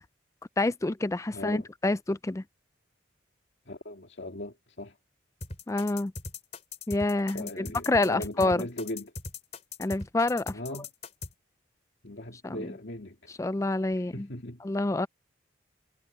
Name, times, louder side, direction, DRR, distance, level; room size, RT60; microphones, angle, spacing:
voice 1, 0.6-2.4 5.7-6.1 6.9-8.7 9.8-10.8 12.4-12.6 13.4-14.3 14.6-15.1, left 2 dB, 15° left, 0.3 m, -27 dB
voice 2, 1.3-1.7 3.7-5.0 7.3-9.1 10.5-10.9 12.0-13.3 13.9-14.6, left 1 dB, 65° left, 2.1 m, -39 dB
sound 1, 5.4-11.3, left 3 dB, 35° left, 3.3 m, -39 dB
head